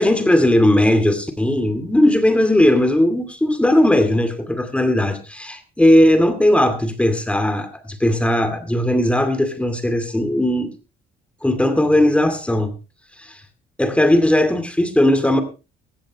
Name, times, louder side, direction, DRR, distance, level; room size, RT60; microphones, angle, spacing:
voice 1, 0.0-10.7 11.4-12.7 13.2-13.4 13.8-15.4, left 1 dB, 5° left, 2.4 m, -17 dB
16.5 x 15.0 x 3.0 m
cardioid pair, 110°, 17 cm